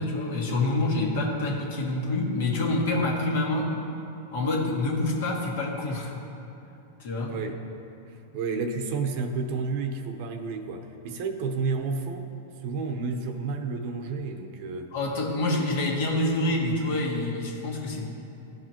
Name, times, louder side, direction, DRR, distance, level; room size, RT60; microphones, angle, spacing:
voice 1, 0.0-3.7 4.3-6.2 7.0-7.4 14.9-18.1, left 2 dB, 70° left, -2 dB, 1.8 m, -27 dB
voice 2, 7.3-7.6 8.1-12.3 12.6-14.9, right 4 dB, 55° right, 6 dB, 0.8 m, -31 dB
14.5 x 4.9 x 3.0 m, 2.9 s
hypercardioid pair, 125°, 0 cm